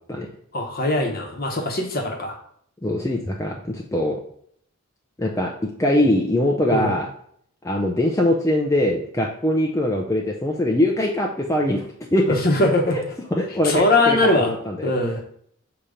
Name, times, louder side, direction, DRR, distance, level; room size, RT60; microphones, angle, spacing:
voice 1, 0.5-2.4 6.7-7.0 12.3-13.0 13.6-14.5 14.8-15.2, left 2 dB, 45° left, 3 dB, 1.0 m, -21 dB
voice 2, 2.8-4.2 5.2-5.5 5.8-7.1 7.6-11.8 12.1-12.3 13.4-14.9, left 1 dB, 15° left, 0 dB, 0.5 m, -22 dB
6.7 x 2.9 x 5.0 m, 0.66 s
head